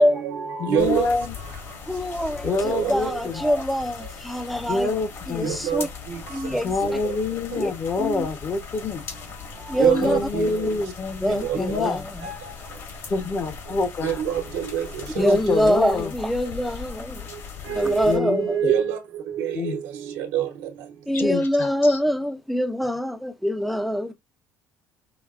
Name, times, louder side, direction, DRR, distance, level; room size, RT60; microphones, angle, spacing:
voice 1, 0.0-1.1 2.5-3.2 5.4-6.6 7.0-7.2 7.5-7.6 9.3-10.7 11.3-11.6 12.2-12.5 14.0-15.3 17.6-20.7, right 9 dB, 75° right, 1.0 m, -27 dB
voice 2, 0.6-1.3 2.4-3.4 4.7-5.6 6.6-9.0 10.0-12.0 13.1-14.2 15.2-16.1 18.0-18.7 19.5-19.8 21.1-22.0, left 3 dB, 40° left, 1.0 m, -26 dB
sound 1, 0.8-18.2, left 5 dB, 55° left, 2.0 m, -39 dB
voice 3, 1.9-4.9 5.3-5.9 6.3-6.7 7.5-7.7 8.0-8.3 9.7-10.2 11.2-12.0 15.2-17.3 17.7-18.6 21.1-24.2, equal, ahead, 0.6 m, -24 dB
5.2 x 2.3 x 2.5 m
supercardioid pair, 80°, 6 cm